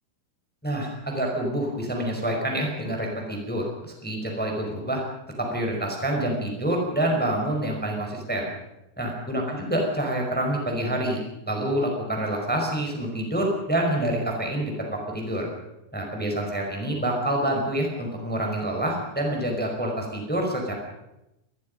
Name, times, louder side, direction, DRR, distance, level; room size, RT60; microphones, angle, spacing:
voice 1, 0.6-5.0 5.4-8.5 9.0-11.2 11.5-15.5 15.9-20.7, right 1 dB, ahead, 1 dB, 4.4 m, -27 dB
26.5 x 20.0 x 5.3 m, 0.91 s
omnidirectional pair, 4.6 m